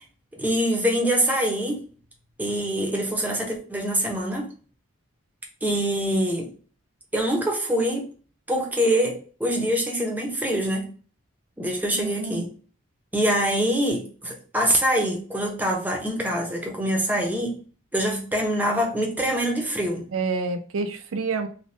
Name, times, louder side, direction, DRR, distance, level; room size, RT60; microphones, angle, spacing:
voice 1, 0.3-1.8 2.4-4.5 5.6-6.5 7.1-8.1 8.5-10.9 11.6-12.5 13.1-17.6 17.9-20.1, equal, 10° right, 1 dB, 0.6 m, -24 dB
voice 2, 11.9-12.4 20.1-21.5, right 4 dB, 80° right, 7 dB, 0.4 m, -28 dB
3.2 x 2.2 x 2.7 m, 0.39 s
head